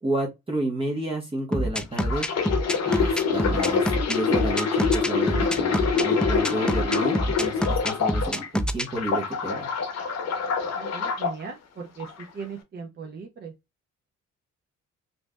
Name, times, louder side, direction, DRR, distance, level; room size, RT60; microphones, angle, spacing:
voice 1, 0.0-2.3 2.8-9.7, right 2 dB, 20° right, 1.1 m, -31 dB
sound 1, 1.5-8.9, equal, 5° left, 0.3 m, -26 dB
sound 2, 2.0-8.5 8.9-11.3 12.0-12.2, left 5 dB, 60° left, 0.8 m, -26 dB
voice 2, 10.7-13.5, right 5 dB, 35° right, 0.7 m, -38 dB
3.1 x 2.7 x 2.2 m
cardioid pair, 90°, 30 cm